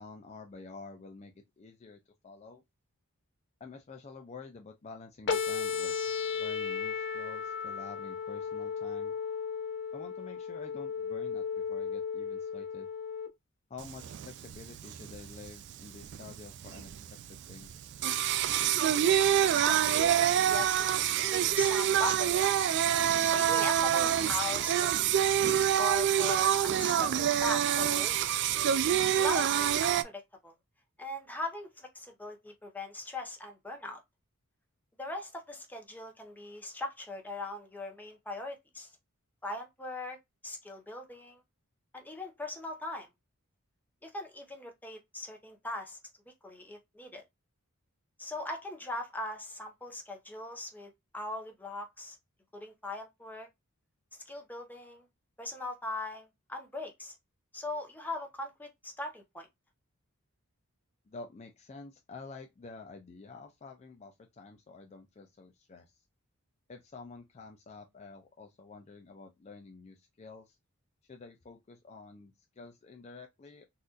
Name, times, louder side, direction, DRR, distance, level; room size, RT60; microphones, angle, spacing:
voice 1, 0.0-2.6 3.6-9.1 9.9-12.9 13.7-16.9 17.3-17.8 61.1-65.9 66.7-70.6 71.1-73.6, left 4 dB, 30° left, 0.4 m, -49 dB
sound 1, 5.3-13.3, left 6 dB, 55° left, 0.7 m, -35 dB
Singing, 13.8-30.0, right 10 dB, 55° right, 0.3 m, -27 dB
voice 2, 19.5-22.6 23.3-25.1 25.8-28.4 29.2-30.5 31.0-34.0 35.0-38.9 39.4-40.2 40.4-41.4 41.9-43.1 44.0-46.0 46.4-47.2 48.2-52.2 52.5-53.5 54.3-55.1 55.4-57.1 57.5-59.5, left 2 dB, 10° left, 0.8 m, -40 dB
4.1 x 2.5 x 2.4 m
head